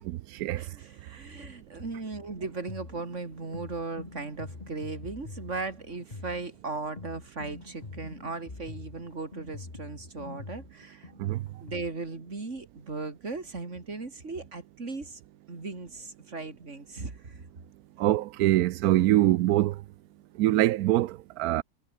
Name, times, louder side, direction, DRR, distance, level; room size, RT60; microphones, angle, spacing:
voice 1, 0.1-0.6 11.2-11.4 18.0-19.7 20.4-21.6, right 15 dB, 75° right, 1.0 m, -24 dB
voice 2, 0.6-11.1 11.6-15.2 15.5-17.4, right 3 dB, 50° right, 3.5 m, -37 dB
sound 1, 2.2-11.9, left 3 dB, 25° left, 1.9 m, -45 dB
omnidirectional pair, 1.6 m